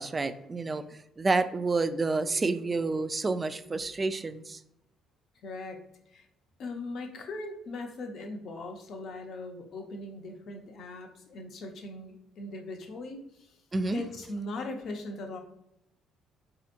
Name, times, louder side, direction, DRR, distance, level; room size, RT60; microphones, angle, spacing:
voice 1, 0.0-4.6 13.7-14.0, right 3 dB, 30° right, 12 dB, 0.3 m, -29 dB
voice 2, 5.4-5.8 6.1-6.3 6.6-13.6 13.9-15.4, left 2 dB, 60° left, 3 dB, 0.7 m, -39 dB
4.2 x 2.8 x 2.4 m, 0.79 s
supercardioid pair, 65°, 0 cm